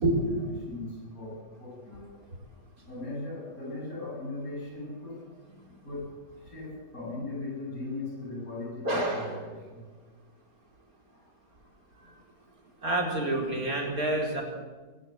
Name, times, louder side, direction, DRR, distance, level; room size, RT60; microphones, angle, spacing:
voice 1, 0.4-2.3 2.9-5.3 5.8-6.2 6.4-9.8 11.1-11.2 11.9-12.2, left 2 dB, 55° left, -2 dB, 8.3 m, -39 dB
voice 2, 8.8-9.4 12.8-14.4, right 2 dB, 55° right, 0 dB, 5.2 m, -28 dB
22.5 x 18.5 x 8.1 m, 1.4 s
omnidirectional pair, 1.8 m